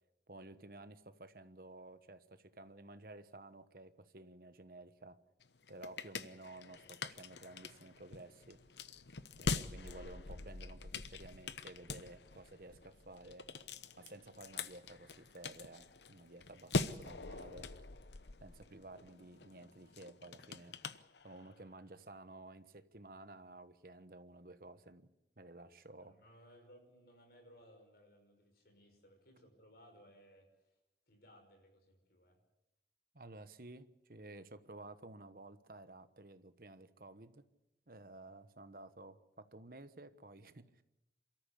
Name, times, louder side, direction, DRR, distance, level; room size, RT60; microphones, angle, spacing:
voice 1, 0.3-5.2 5.7-8.6 9.4-13.5 14.0-17.8 18.4-20.8 21.2-25.1 25.4-26.1 33.1-37.4 37.9-40.8, right 2 dB, 55° right, 11 dB, 1.2 m, -54 dB
sound 1, 5.4-21.7, left 3 dB, 80° left, 0.9 m, -44 dB
voice 2, 26.0-30.8 31.1-32.4, equal, 60° left, 4 dB, 5.9 m, -62 dB
27.5 x 14.0 x 8.4 m, 0.95 s
head